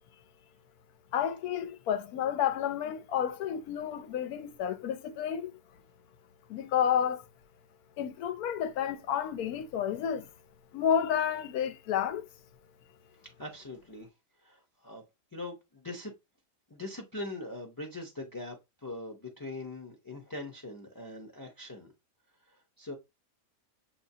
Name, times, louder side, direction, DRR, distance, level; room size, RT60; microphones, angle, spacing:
voice 1, 1.1-5.5 6.5-7.2 8.0-10.3 10.7-12.2, left 9 dB, 85° left, 1.1 m, -30 dB
voice 2, 13.4-14.1 14.4-15.0 15.3-16.1 16.7-21.9 22.5-22.9, left 2 dB, 20° left, 0.6 m, -42 dB
7.2 x 2.8 x 2.7 m
omnidirectional pair, 1.5 m